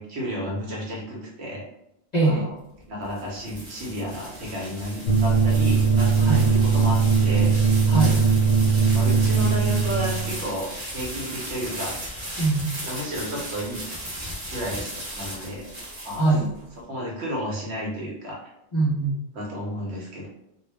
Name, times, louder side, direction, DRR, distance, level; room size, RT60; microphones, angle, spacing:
voice 1, 0.0-1.7 2.2-2.5 2.9-7.8 8.9-12.0 12.8-13.8 14.5-14.8 15.1-15.7 16.0-16.3 16.9-18.5 19.4-20.3, equal, 60° right, -2 dB, 0.9 m, -32 dB
voice 2, 2.1-2.5 6.2-6.5 7.9-8.2 12.4-12.7 16.2-16.5 18.7-19.2, right 3 dB, 45° left, -7 dB, 0.6 m, -22 dB
sound 1, 2.8-16.6, right 1 dB, 25° right, 0.8 m, -36 dB
sound 2, 5.1-10.4, right 5 dB, 65° left, 0.8 m, -20 dB
2.3 x 2.0 x 3.2 m, 0.84 s
omnidirectional pair, 1.3 m